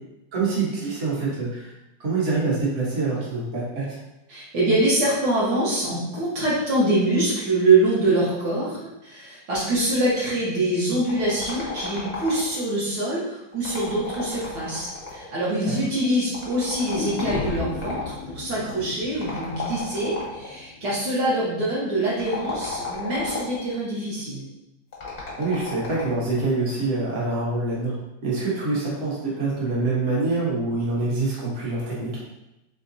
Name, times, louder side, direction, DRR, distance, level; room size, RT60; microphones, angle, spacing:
voice 1, 0.3-1.7 2.0-4.0 15.6-15.7 25.4-28.0 28.2-32.1, right 3 dB, 45° right, -6 dB, 1.2 m, -25 dB
voice 2, 4.3-24.4, right 2 dB, 65° right, -7 dB, 1.6 m, -24 dB
sound 1, 11.1-12.7 13.5-15.4 16.3-18.2 19.2-20.5 22.1-23.7 24.9-26.3, left 4 dB, 35° left, 0.6 m, -34 dB
sound 2, 16.9-21.0 21.3-21.4, left 4 dB, 85° left, 1.4 m, -34 dB
4.0 x 3.4 x 2.6 m, 0.92 s
omnidirectional pair, 2.2 m